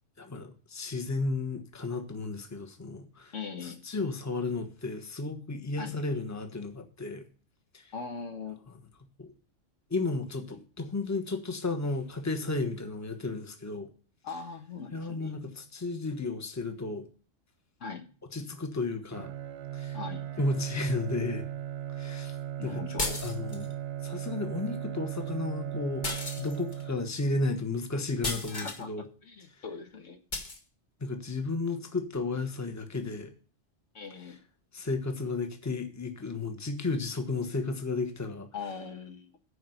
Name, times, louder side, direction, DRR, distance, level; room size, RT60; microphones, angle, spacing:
voice 1, 0.2-3.3 3.6-7.2 7.7-7.9 9.2-9.3 9.9-13.9 14.9-17.1 18.3-19.3 19.7-20.0 20.4-21.5 22.0-22.4 22.6-22.8 23.2-23.7 24.0-26.1 26.4-29.1 31.0-33.3 34.7-38.5, left 3 dB, 15° left, 1.2 m, -33 dB
voice 2, 3.3-3.8 5.8-5.9 7.9-8.6 14.2-15.3 17.8-18.1 19.9-20.3 22.6-23.2 28.5-30.2 33.9-34.4 38.5-39.4, left 5 dB, 75° left, 1.6 m, -40 dB
Bowed string instrument, 19.1-27.4, right 11 dB, 60° right, 0.9 m, -37 dB
sound 1, 23.0-23.7 26.0-26.8 28.2-28.8 30.3-30.6, left 2 dB, 40° left, 1.6 m, -34 dB
10.0 x 4.7 x 7.9 m
omnidirectional pair, 1.3 m